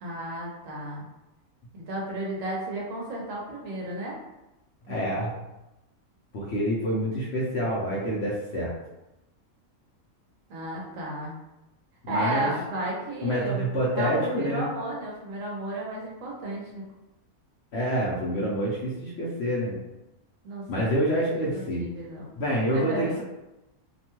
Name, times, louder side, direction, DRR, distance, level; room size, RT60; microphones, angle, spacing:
voice 1, 0.0-1.0 1.7-4.1 4.9-5.1 10.5-11.3 12.1-16.8 20.4-21.0 21.4-22.3 22.7-23.2, right 1 dB, 65° right, -4 dB, 1.1 m, -33 dB
voice 2, 4.9-5.3 6.3-8.7 12.0-12.5 13.2-14.7 17.7-19.8 20.7-21.9 22.4-23.2, equal, 60° left, -5 dB, 0.8 m, -27 dB
2.9 x 2.2 x 2.9 m, 0.96 s
omnidirectional pair, 1.5 m